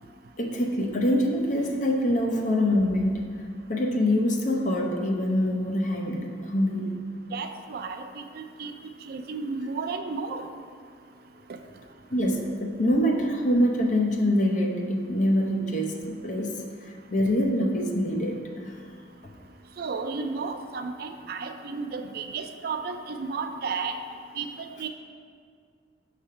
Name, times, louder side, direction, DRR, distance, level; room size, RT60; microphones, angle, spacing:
voice 1, 0.4-3.3 3.7-7.0 12.1-18.7, left 1 dB, 45° left, 1 dB, 0.7 m, -25 dB
voice 2, 7.3-8.7 9.1-10.5 11.5-11.6 19.8-24.0 24.4-24.9, right 4 dB, 55° right, 7 dB, 0.4 m, -33 dB
6.2 x 3.3 x 5.6 m, 2.2 s
head